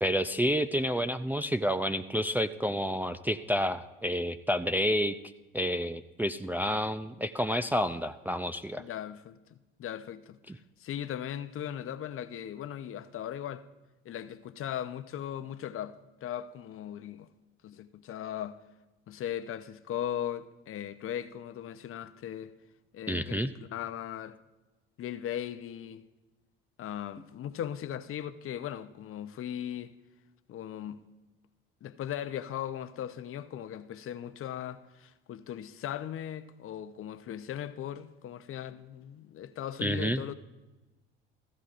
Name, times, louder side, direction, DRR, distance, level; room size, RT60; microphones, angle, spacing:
voice 1, 0.0-5.2 5.5-8.8 10.5-10.6 23.1-23.5 39.8-40.2, equal, 5° right, 0.4 m, -29 dB
voice 2, 8.8-13.6 14.0-17.3 17.6-18.6 19.1-22.5 22.9-24.4 25.0-26.0 26.8-29.9 30.5-31.0 31.8-40.3, left 10 dB, 45° left, 0.7 m, -38 dB
15.5 x 14.0 x 2.5 m
supercardioid pair, 75°, 29 cm